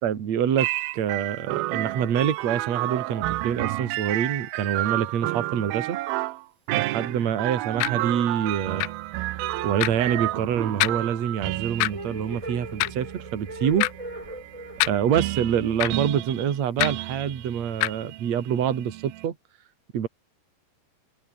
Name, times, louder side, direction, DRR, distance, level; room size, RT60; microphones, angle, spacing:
voice 1, 0.0-0.7 0.9-6.0 6.7-8.8 9.6-13.9 14.9-19.3 19.9-20.1, right 8 dB, 45° right, 3.1 m, -26 dB
sound 1, 0.6-19.3, right 17 dB, 75° right, 2.2 m, -31 dB
sound 2, 7.8-7.9 8.8-8.9 9.8-9.9 10.8-11.0 11.8-11.9 12.8-13.0 13.8-13.9 14.8-14.9 15.8-15.9 16.8-16.9 17.8-17.9, left 22 dB, 80° left, 2.6 m, -23 dB
sound 3, 9.3-16.5, right 1 dB, 10° right, 3.4 m, -41 dB
open air
omnidirectional pair, 5.2 m